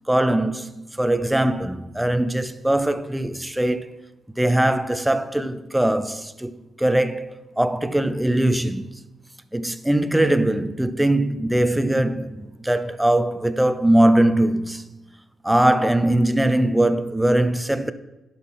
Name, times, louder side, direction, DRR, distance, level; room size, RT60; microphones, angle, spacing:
voice 1, 0.1-3.9 4.4-9.0 9.5-14.8 15.4-17.9, right 1 dB, 5° right, 0.5 m, -21 dB
11.5 x 5.4 x 4.3 m
cardioid pair, 90°, 0 cm